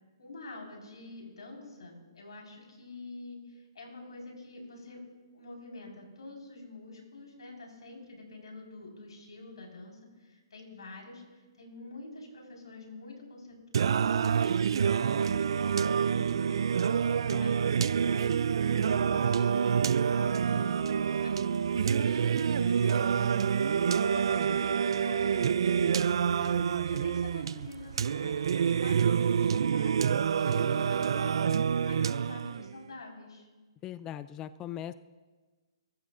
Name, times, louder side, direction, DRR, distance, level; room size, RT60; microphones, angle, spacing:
voice 1, 0.2-5.0 5.3-13.6 13.8-26.0 26.4-33.5, left 2 dB, 90° left, 0 dB, 4.7 m, -46 dB
Singing, 13.7-32.7, right 7 dB, 70° right, 0.3 m, -27 dB
voice 2, 33.8-34.9, left 11 dB, 20° left, 14 dB, 0.3 m, -40 dB
21.5 x 13.5 x 2.6 m, 1.3 s
hypercardioid pair, 150°, 3 cm